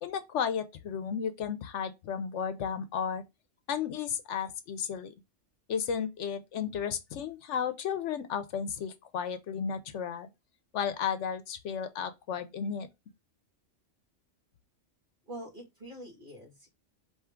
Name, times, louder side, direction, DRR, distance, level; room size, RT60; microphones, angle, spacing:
voice 1, 0.0-3.2 3.7-5.1 5.7-10.3 10.7-12.9, left 7 dB, 75° left, 1.0 m, -33 dB
voice 2, 15.3-16.7, right 1 dB, 45° right, 2.1 m, -45 dB
4.4 x 3.1 x 3.5 m
omnidirectional pair, 1.3 m